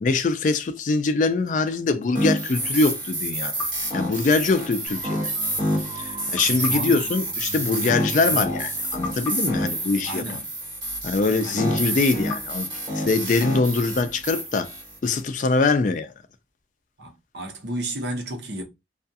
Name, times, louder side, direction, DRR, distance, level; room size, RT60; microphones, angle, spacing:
voice 1, 0.0-3.7 3.9-5.3 6.0-10.2 11.0-12.7 12.9-14.7 15.0-16.1, left 3 dB, 45° left, 0.3 m, -23 dB
sound 1, 2.1-15.2, right 1 dB, 25° right, 1.2 m, -28 dB
sound 2, 4.9-10.3, right 3 dB, 50° right, 0.6 m, -42 dB
sound 3, 6.3-8.7 9.0-11.3 12.3-14.1, left 4 dB, 15° left, 0.9 m, -42 dB
voice 2, 6.5-7.1 10.0-10.4 11.4-11.7 17.0-18.6, right 1 dB, 75° right, 0.8 m, -32 dB
2.3 x 2.3 x 2.6 m
head